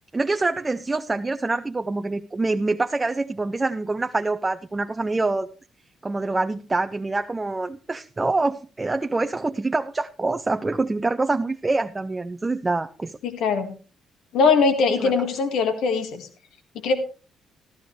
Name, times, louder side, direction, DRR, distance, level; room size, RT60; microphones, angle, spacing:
voice 1, 0.1-5.5 6.0-13.2 15.0-15.1, right 3 dB, 20° right, 8 dB, 0.6 m, -25 dB
voice 2, 13.2-13.7 14.3-16.3 16.7-16.9, left 4 dB, 80° left, 7 dB, 1.8 m, -21 dB
14.0 x 12.5 x 3.2 m, 0.35 s
cardioid pair, 90°, 0 cm